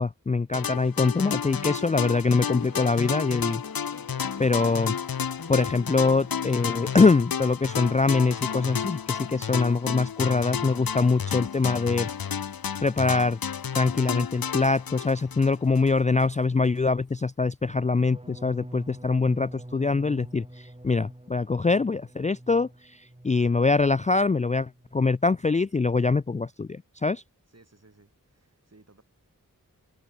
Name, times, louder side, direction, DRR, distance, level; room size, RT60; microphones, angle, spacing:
voice 1, 0.0-3.6 4.4-4.9 5.5-12.1 12.8-13.4 13.7-22.7 23.2-27.2, left 4 dB, 20° left, 0.4 m, -24 dB
sound 1, 0.5-15.9, left 7 dB, 85° left, 0.8 m, -32 dB
sound 2, 1.2-7.1, left 4 dB, 55° left, 1.7 m, -45 dB
voice 2, 3.8-4.5 27.5-29.0, right 2 dB, 45° right, 7.5 m, -58 dB
sound 3, 17.6-23.5 23.8-24.3 24.6-25.0, right 1 dB, 15° right, 6.6 m, -45 dB
wide cardioid pair, 45°, 34 cm